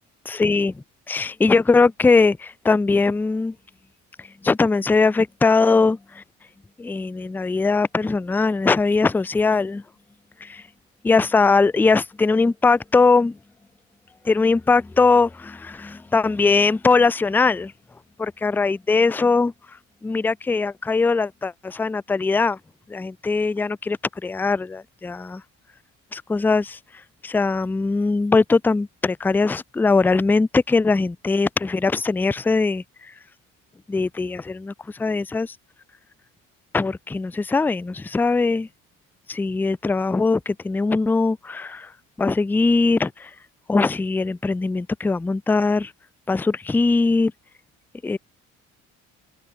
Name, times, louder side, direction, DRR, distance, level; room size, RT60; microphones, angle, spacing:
voice 1, 0.3-3.6 4.2-6.2 6.8-9.8 10.4-10.7 11.0-13.4 14.2-17.7 18.2-22.6 22.9-25.4 26.1-33.1 33.9-35.6 36.7-38.7 39.3-41.9 42.2-43.4 43.7-45.9 46.3-47.3 48.0-48.2, left 4 dB, 5° left, 0.3 m, -21 dB
supercardioid pair, 85°, 33 cm